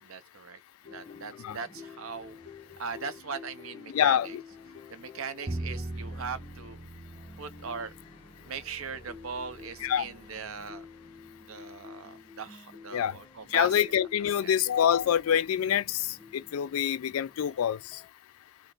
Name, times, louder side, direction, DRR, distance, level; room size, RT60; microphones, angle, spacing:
voice 1, 0.0-0.6 0.9-2.4 2.8-4.4 4.9-6.8 7.4-7.9 8.4-10.8 11.5-13.8 14.4-14.5, right 5 dB, 75° right, 0.6 m, -39 dB
sound 1, 0.8-18.1, left 5 dB, 25° left, 0.9 m, -50 dB
voice 2, 3.9-4.4 9.8-10.0 12.9-13.1 13.5-18.0, left 9 dB, 85° left, 0.3 m, -26 dB
Bowed string instrument, 5.5-11.6, right 2 dB, 20° right, 0.4 m, -42 dB
3.0 x 2.1 x 3.9 m
head